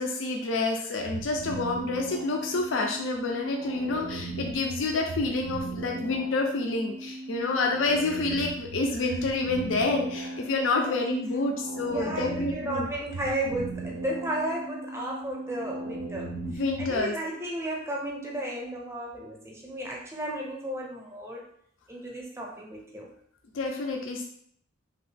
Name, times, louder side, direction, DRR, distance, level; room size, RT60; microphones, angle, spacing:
voice 1, 0.0-12.9 16.5-17.2 23.5-24.2, left 3 dB, 70° left, 2 dB, 0.4 m, -28 dB
sound 1, 1.0-17.0, right 2 dB, 65° right, 0.4 m, -38 dB
voice 2, 11.9-21.5 21.9-23.1, right 1 dB, 15° right, -2 dB, 0.6 m, -34 dB
2.9 x 2.3 x 3.2 m, 0.64 s
head